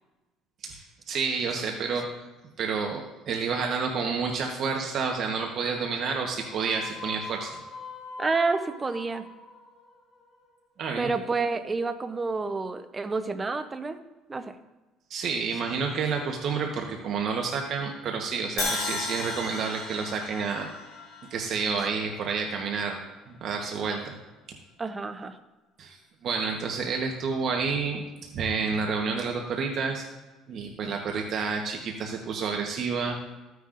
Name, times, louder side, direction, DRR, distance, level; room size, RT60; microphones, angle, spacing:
voice 1, 0.6-2.1 2.6-7.5 10.8-11.1 15.1-20.7 21.3-23.0 23.3-24.2 25.8-28.0 28.3-30.0 30.5-33.2, right 5 dB, 45° right, 1 dB, 1.1 m, -29 dB
sound 1, 5.6-11.0, left 4 dB, 30° left, 1.8 m, -44 dB
voice 2, 8.2-9.2 11.0-14.0 14.3-14.5 24.8-25.4, right 4 dB, 15° right, 8 dB, 0.6 m, -29 dB
Crash cymbal, 18.6-22.6, left 3 dB, 60° left, 3.1 m, -35 dB
14.5 x 9.4 x 2.5 m, 1.1 s
cardioid pair, 155°, 0 cm